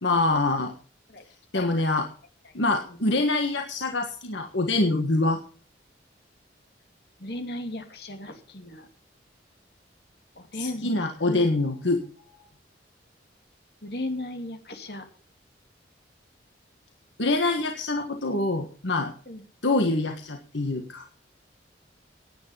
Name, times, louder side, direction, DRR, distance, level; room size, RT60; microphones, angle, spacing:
voice 1, 0.0-0.7 1.5-2.1 2.5-5.4 10.5-12.0 17.2-19.1 19.6-21.0, left 2 dB, 75° left, 4 dB, 1.6 m, -25 dB
voice 2, 7.2-8.9 10.4-11.5 13.8-15.1 18.3-18.5 19.3-19.4, left 1 dB, 55° left, 6 dB, 2.7 m, -36 dB
17.0 x 9.6 x 5.7 m, 0.42 s
head